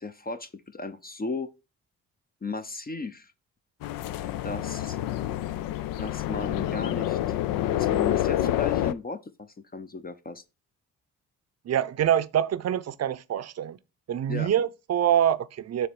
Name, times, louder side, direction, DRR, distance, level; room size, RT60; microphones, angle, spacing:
voice 1, 0.0-1.5 2.4-3.3 4.4-5.1 6.0-7.2 7.6-10.4 14.3-14.5, left 3 dB, 25° left, 0.6 m, -36 dB
sound 1, 3.8-8.9, left 13 dB, 70° left, 0.5 m, -28 dB
voice 2, 11.6-13.8 14.1-15.9, right 10 dB, 45° right, 0.6 m, -25 dB
6.9 x 3.1 x 6.0 m
hypercardioid pair, 45°, 35 cm